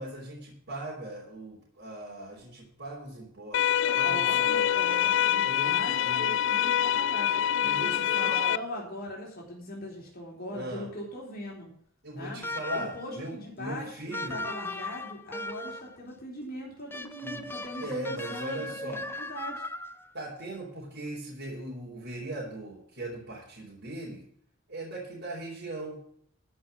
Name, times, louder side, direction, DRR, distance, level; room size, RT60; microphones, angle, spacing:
voice 1, 0.0-5.2 5.4-6.3 7.6-8.5 10.5-10.9 12.0-14.4 17.2-17.5 17.8-19.0 20.1-24.2 24.7-26.0, right 1 dB, 60° right, -5 dB, 3.5 m, -39 dB
sound 1, 3.5-8.6, left 10 dB, 65° left, 0.4 m, -25 dB
voice 2, 3.8-11.7 12.2-12.4 12.7-19.6, equal, 50° left, -2 dB, 3.7 m, -40 dB
sound 2, 12.4-13.1 14.1-16.0 16.9-20.1, left 2 dB, 10° left, 0.7 m, -38 dB
13.5 x 5.5 x 7.4 m, 0.65 s
head